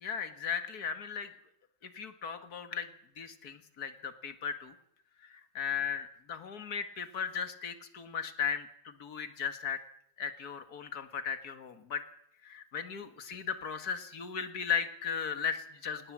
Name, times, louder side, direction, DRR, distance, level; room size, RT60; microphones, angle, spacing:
voice 1, 0.0-1.3 1.8-2.9 3.2-4.7 5.2-9.8 10.2-12.0 12.4-16.1, left 7 dB, 50° left, 9 dB, 2.1 m, -36 dB
26.0 x 19.0 x 7.5 m, 0.72 s
omnidirectional pair, 2.1 m